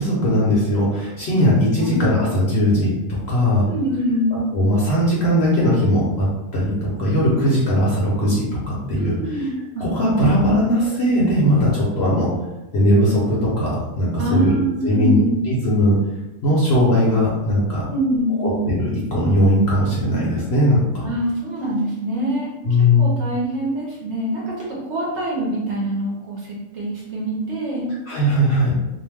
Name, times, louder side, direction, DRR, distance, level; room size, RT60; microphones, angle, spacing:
voice 1, 0.0-3.7 4.5-9.4 9.8-12.3 12.7-14.5 14.8-15.2 15.4-16.0 16.4-17.9 18.4-21.1 22.7-23.2 28.1-28.7, equal, 55° left, -6 dB, 0.8 m, -19 dB
voice 2, 3.7-4.4 9.0-9.9 10.2-10.3 10.8-10.9 14.2-15.3 17.9-18.7 21.0-22.5 23.0-27.9, right 1 dB, 60° right, -4 dB, 0.8 m, -24 dB
2.5 x 2.0 x 3.3 m, 1.0 s
omnidirectional pair, 1.6 m